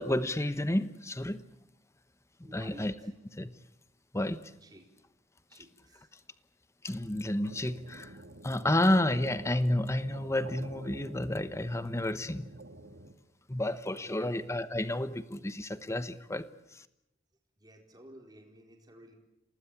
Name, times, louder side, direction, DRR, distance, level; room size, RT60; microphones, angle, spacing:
voice 1, 0.0-1.4 2.5-2.9 3.3-3.5 4.1-4.5 6.8-8.2 8.4-12.5 13.5-16.8, left 1 dB, 15° left, 1.0 m, -31 dB
voice 2, 2.4-3.1 4.6-4.9 5.5-6.1 14.0-14.4 17.6-19.1, right 1 dB, 20° right, 4.5 m, -53 dB
sound 1, 7.4-13.1, right 2 dB, 70° right, 2.0 m, -49 dB
28.0 x 19.0 x 8.7 m
head